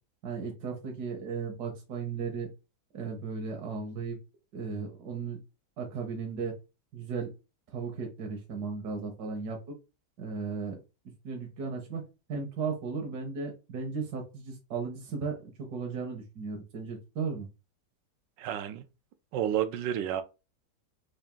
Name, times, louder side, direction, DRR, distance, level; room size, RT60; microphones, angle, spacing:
voice 1, 0.2-2.5 2.9-4.2 4.5-5.4 5.8-6.5 6.9-7.3 7.7-9.7 10.2-10.8 11.2-12.0 12.3-17.5, right 5 dB, 70° right, 1.4 m, -35 dB
voice 2, 18.4-18.8 19.3-20.2, right 10 dB, 90° right, 1.3 m, -30 dB
3.9 x 2.5 x 3.5 m
omnidirectional pair, 1.9 m